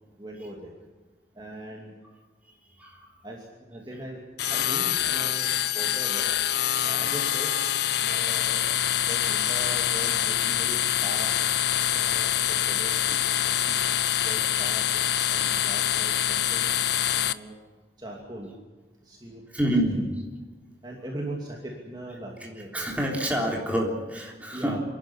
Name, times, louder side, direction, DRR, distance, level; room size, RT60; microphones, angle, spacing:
voice 1, 0.2-0.7 1.3-1.9 3.2-4.2 4.5-6.3 6.8-7.5 8.0-8.6 9.1-11.3 11.9-12.3 12.6-13.8 14.3-14.8 15.3-16.7 17.1-17.6 18.0-18.5 19.0-19.4 20.8-22.9 24.5-24.8, right 1 dB, 25° right, -2 dB, 2.7 m, -40 dB
sound 1, 4.4-17.3, left 11 dB, 75° left, 0.6 m, -25 dB
voice 2, 19.5-20.1 22.7-24.8, right 1 dB, 10° right, -2 dB, 3.5 m, -27 dB
27.5 x 11.5 x 10.0 m, 1.3 s
head